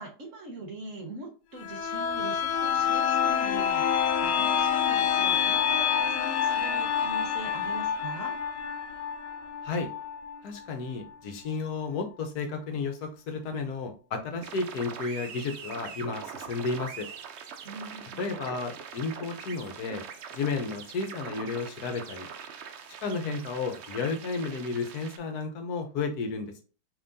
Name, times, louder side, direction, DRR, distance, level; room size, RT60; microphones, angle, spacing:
voice 1, 0.0-8.3 17.6-18.2, right 1 dB, 55° right, 2 dB, 1.2 m, -42 dB
sound 1, 1.6-11.2 11.5-11.6, left 8 dB, 85° left, 1.3 m, -27 dB
voice 2, 10.4-17.1 18.2-20.0 20.3-22.3 23.0-26.6, left 4 dB, 70° left, 5 dB, 1.2 m, -32 dB
sound 2, 14.4-25.2, right 7 dB, 75° right, 0.6 m, -43 dB
5.3 x 3.0 x 2.6 m, 0.36 s
omnidirectional pair, 1.8 m